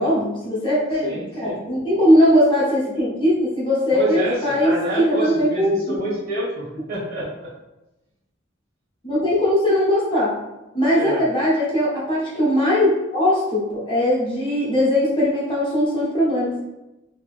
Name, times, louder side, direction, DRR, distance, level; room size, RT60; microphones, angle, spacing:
voice 1, 0.0-5.8 9.0-10.4 10.7-16.5, equal, 25° left, -6 dB, 0.8 m, -20 dB
voice 2, 1.0-1.6 3.9-7.5 10.9-11.2, right 1 dB, 50° right, -7 dB, 1.5 m, -28 dB
3.4 x 2.9 x 2.4 m, 0.98 s
head